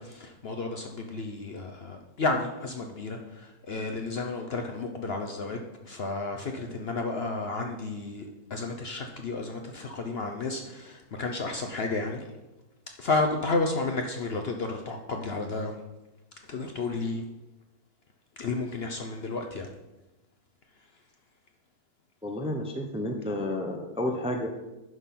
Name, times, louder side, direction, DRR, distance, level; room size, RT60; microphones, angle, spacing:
voice 1, 0.0-8.2 8.5-12.2 13.0-15.8 16.5-17.2 18.4-19.7, left 3 dB, 55° left, 4 dB, 0.7 m, -32 dB
voice 2, 22.2-24.5, left 1 dB, 5° right, 2 dB, 0.5 m, -31 dB
11.0 x 3.8 x 5.8 m, 1.0 s
omnidirectional pair, 1.6 m